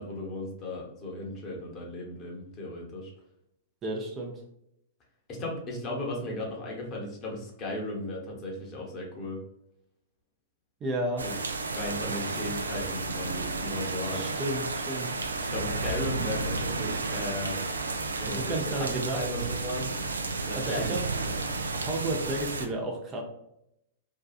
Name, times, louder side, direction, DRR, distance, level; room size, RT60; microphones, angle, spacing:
voice 1, 0.0-3.1 5.4-9.4 11.2-11.3 11.7-14.2 15.5-17.6 18.2-19.9 20.4-21.4, left 1 dB, 30° left, -1 dB, 0.9 m, -36 dB
voice 2, 3.8-4.4 10.8-11.3 14.1-15.1 18.3-19.5 20.5-21.0 21.4-23.2, right 1 dB, 25° right, 1 dB, 0.5 m, -33 dB
sound 1, 11.2-22.7, right 3 dB, 85° right, 0.3 m, -32 dB
2.7 x 2.3 x 2.4 m, 0.80 s
hypercardioid pair, 105°, 0 cm